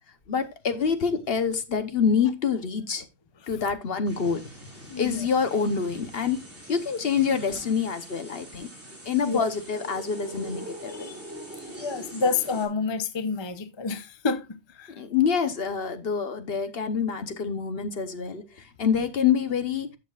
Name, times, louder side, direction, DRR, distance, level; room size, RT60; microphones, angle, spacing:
voice 1, 0.3-3.0 3.5-4.5 5.0-6.4 6.7-8.7 9.0-11.2 15.0-18.4 18.8-19.9, left 6 dB, 60° left, 1.1 m, -26 dB
sound 1, 4.1-12.7, right 1 dB, 10° right, 3.6 m, -43 dB
voice 2, 4.9-5.3 9.2-9.5 11.8-15.0 18.9-19.0, left 4 dB, 30° left, 0.7 m, -29 dB
12.5 x 6.6 x 2.4 m
omnidirectional pair, 1.2 m